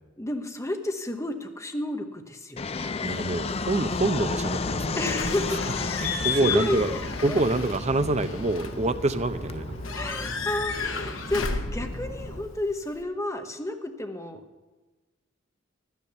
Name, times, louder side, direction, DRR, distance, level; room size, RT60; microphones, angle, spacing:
voice 1, 0.2-2.9 4.9-5.6 6.4-7.0 7.3-7.4 9.9-14.4, left 1 dB, 15° left, 6 dB, 1.0 m, -31 dB
Fixed-wing aircraft airplane, 2.6-11.6, left 4 dB, 30° left, 0.4 m, -33 dB
voice 2, 3.0-5.2 6.0-6.9 7.2-9.7, right 2 dB, 35° right, 10 dB, 0.6 m, -26 dB
sound 1, 3.4-12.4, equal, 55° left, 5.0 m, -39 dB
Slam / Squeak / Alarm, 5.1-13.0, left 5 dB, 90° left, 1.0 m, -34 dB
12.0 x 9.6 x 6.7 m, 1.2 s
head